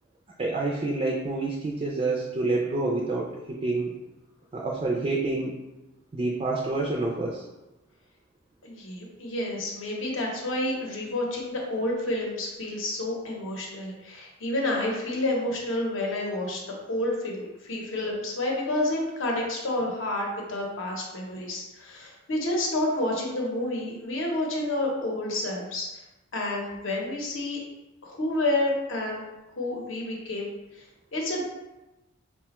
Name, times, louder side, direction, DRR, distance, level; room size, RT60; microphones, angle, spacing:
voice 1, 0.4-3.9 4.5-5.5 6.1-7.4, right 2 dB, 30° right, -2 dB, 0.3 m, -28 dB
voice 2, 8.6-25.9 26.3-27.6 28.0-29.2 29.6-30.8 31.1-31.4, left 1 dB, 65° left, -1 dB, 0.7 m, -29 dB
4.8 x 2.2 x 2.9 m, 1.0 s
head